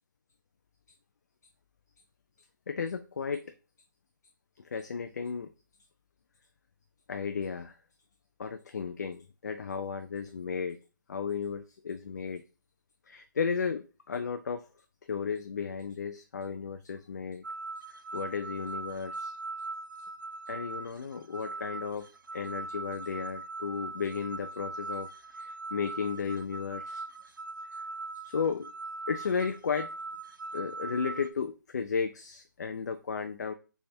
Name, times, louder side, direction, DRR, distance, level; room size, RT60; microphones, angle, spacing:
voice 1, 2.7-3.4 4.7-5.5 7.1-7.7 8.4-10.8 11.1-12.4 13.1-14.6 15.1-17.4 18.1-19.3 20.5-22.1 22.3-25.1 25.4-27.0 28.3-28.7 29.1-29.9 30.5-33.5, left 6 dB, 55° left, 8 dB, 0.4 m, -34 dB
sound 1, 17.4-31.3, right 3 dB, 80° right, 0.7 m, -41 dB
3.4 x 3.3 x 4.2 m, 0.34 s
hypercardioid pair, 165°, 11 cm